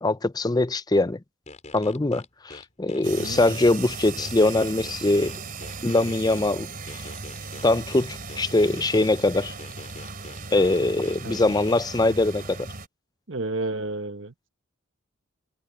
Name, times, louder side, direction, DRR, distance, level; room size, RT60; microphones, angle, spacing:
voice 1, 0.0-1.2 1.7-5.3 5.8-6.7 7.6-9.5 10.5-12.7, left 2 dB, 20° left, 0.5 m, -22 dB
sound 1, 1.5-3.7 4.2-6.4 6.9-9.1 9.6-11.8, left 2 dB, 35° left, 5.0 m, -44 dB
sound 2, 3.0-12.9, right 4 dB, 45° right, 3.5 m, -37 dB
voice 2, 3.0-3.4 11.2-11.5 13.3-14.5, right 2 dB, 65° right, 1.4 m, -32 dB
head